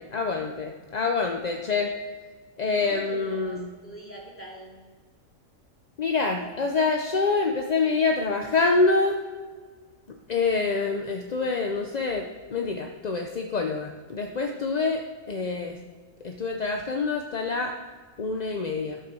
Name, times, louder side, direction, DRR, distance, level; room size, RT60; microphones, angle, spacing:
voice 1, 0.0-1.9 2.6-3.7 6.0-9.2 10.3-15.8 16.2-17.7 18.2-19.0, left 4 dB, 45° left, 3 dB, 0.6 m, -26 dB
voice 2, 2.6-4.8, right 1 dB, 10° left, -3 dB, 2.5 m, -43 dB
13.0 x 5.9 x 6.2 m, 1.5 s
omnidirectional pair, 1.4 m